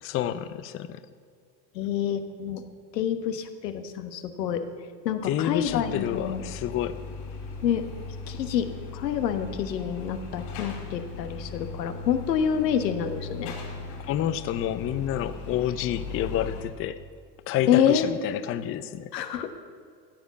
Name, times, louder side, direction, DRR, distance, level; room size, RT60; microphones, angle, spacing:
voice 1, 0.0-1.0 5.2-7.0 14.0-17.0 17.5-19.1, left 11 dB, 25° left, 13 dB, 0.5 m, -29 dB
voice 2, 1.7-2.6 2.9-4.6 5.0-6.4 7.6-7.9 8.3-8.7 8.9-13.5 17.7-18.2 19.1-19.5, left 9 dB, 75° left, 8 dB, 1.4 m, -27 dB
sound 1, 5.7-16.7, left 4 dB, 55° left, 4.2 m, -38 dB
14.5 x 8.2 x 7.1 m, 2.2 s
hypercardioid pair, 85°, 50 cm